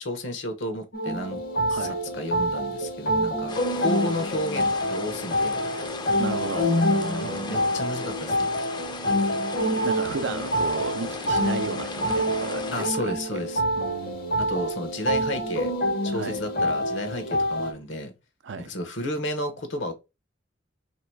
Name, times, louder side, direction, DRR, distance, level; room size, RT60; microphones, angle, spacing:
voice 1, 0.0-1.4 1.7-1.9 2.1-5.6 7.1-8.5 12.7-13.6 14.4-15.7 16.0-18.1 18.6-19.9, left 1 dB, 75° left, 1.0 m, -32 dB
sound 1, 0.9-17.7, equal, 50° left, 0.8 m, -26 dB
sound 2, 3.5-12.9, left 4 dB, 25° left, 0.5 m, -37 dB
voice 2, 5.7-7.8 9.8-13.4 13.8-14.5 16.1-16.4 18.4-18.7, right 4 dB, 70° right, 0.5 m, -35 dB
3.1 x 2.9 x 4.6 m
head